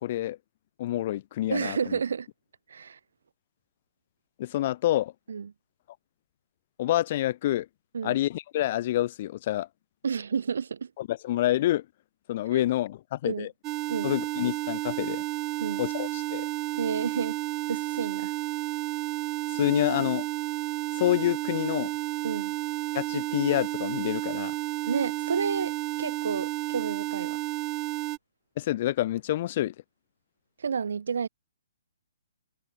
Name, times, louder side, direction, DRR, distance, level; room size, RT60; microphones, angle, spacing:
voice 1, 0.0-0.4 0.8-2.0 4.4-5.1 6.8-7.6 8.0-9.7 11.0-11.8 12.3-13.5 14.0-15.2 15.8-16.4 19.5-20.3 21.0-21.9 22.9-24.5 28.6-29.7, left 14 dB, 45° left, 1.6 m, -27 dB
voice 2, 1.5-2.3 2.7-3.0 5.3-5.5 7.9-8.2 10.0-10.9 12.5-12.6 13.2-13.5 13.9-14.1 15.6-15.8 16.8-17.4 17.7-18.3 22.2-22.5 24.9-27.4 30.6-31.3, right 6 dB, 75° right, 3.7 m, -31 dB
sound 1, 13.6-28.2, right 20 dB, 25° right, 1.2 m, -31 dB
hypercardioid pair, 145°, 0 cm